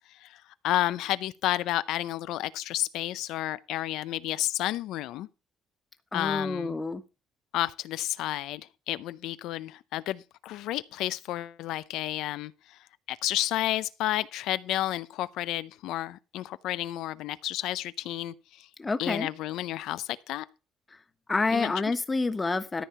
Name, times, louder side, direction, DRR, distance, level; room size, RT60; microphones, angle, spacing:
voice 1, 0.1-5.3 6.1-6.7 7.5-12.8 13.1-18.7 19.0-20.5 21.5-21.7, left 14 dB, 80° left, 0.5 m, -31 dB
voice 2, 6.1-7.0 18.8-19.3 21.3-22.8, left 3 dB, 20° left, 1.3 m, -28 dB
13.5 x 4.6 x 6.8 m
cardioid pair, 105°, 0 cm